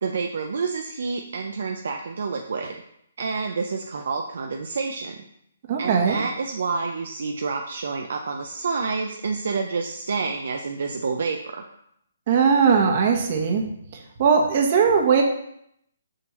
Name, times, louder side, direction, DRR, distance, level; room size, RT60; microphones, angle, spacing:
voice 1, 0.0-2.8 3.2-5.2 5.8-11.6, right 4 dB, 65° right, 3 dB, 0.6 m, -28 dB
voice 2, 5.7-6.2 12.3-13.6 14.2-15.2, right 6 dB, 45° right, 2 dB, 1.2 m, -19 dB
6.3 x 6.0 x 3.1 m, 0.73 s
hypercardioid pair, 140°, 0 cm